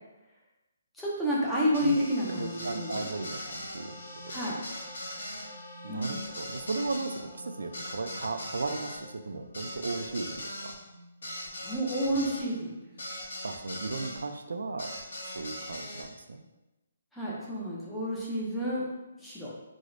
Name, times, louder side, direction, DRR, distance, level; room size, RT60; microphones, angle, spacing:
voice 1, 1.0-3.0 4.3-4.6 5.9-6.3 11.6-12.7 17.1-18.9 19.2-19.5, equal, ahead, -8 dB, 0.4 m, -30 dB
sound 1, 1.7-14.2 14.8-16.1, left 1 dB, 75° left, 0.9 m, -41 dB
voice 2, 1.8-3.9 5.8-8.9 9.2-10.7 13.4-14.9 15.2-16.4, right 3 dB, 85° right, 6 dB, 0.3 m, -36 dB
4.8 x 2.0 x 2.5 m, 1.0 s
hypercardioid pair, 180°, 0 cm